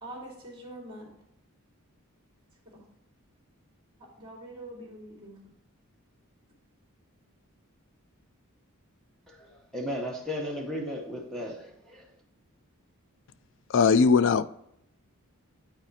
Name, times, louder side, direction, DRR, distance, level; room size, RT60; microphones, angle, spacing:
voice 1, 0.0-1.1 2.7-2.8 4.0-5.4, right 1 dB, 25° right, 2.4 m, -44 dB
voice 2, 9.3-12.1, equal, 5° left, 1.0 m, -35 dB
voice 3, 13.7-14.5, left 5 dB, 60° left, 0.4 m, -19 dB
9.1 x 4.2 x 4.1 m
head